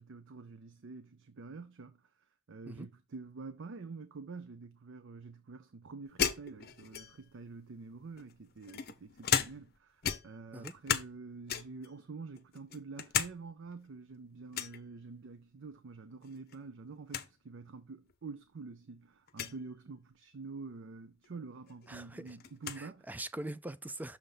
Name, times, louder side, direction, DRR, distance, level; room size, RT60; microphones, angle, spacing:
voice 1, 0.0-2.0 2.5-23.1, right 4 dB, 65° right, 0.5 m, -47 dB
sound 1, 6.2-7.4 8.2-9.8 10.0-11.2 11.5-11.9 12.4-13.3 13.7-13.8 14.5-14.8 16.2-16.6 16.8-16.9 17.1-17.3 18.1-18.2 19.3-19.6 21.2-21.3 21.7-22.8, left 8 dB, 50° left, 0.6 m, -35 dB
voice 2, 21.9-22.4 22.8-24.2, right 1 dB, 10° right, 0.3 m, -42 dB
6.5 x 3.4 x 5.5 m
head